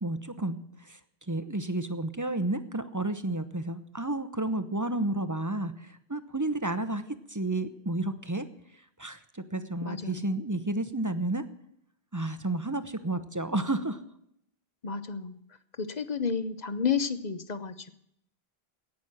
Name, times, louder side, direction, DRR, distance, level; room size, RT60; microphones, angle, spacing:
voice 1, 0.0-1.0 1.3-7.0 7.3-8.5 9.0-11.4 12.1-14.0, right 2 dB, 20° right, 11 dB, 0.8 m, -31 dB
voice 2, 9.8-10.3 14.8-15.4 15.8-17.9, left 6 dB, 45° left, 12 dB, 0.9 m, -31 dB
17.5 x 6.2 x 8.8 m, 0.74 s
omnidirectional pair, 1.1 m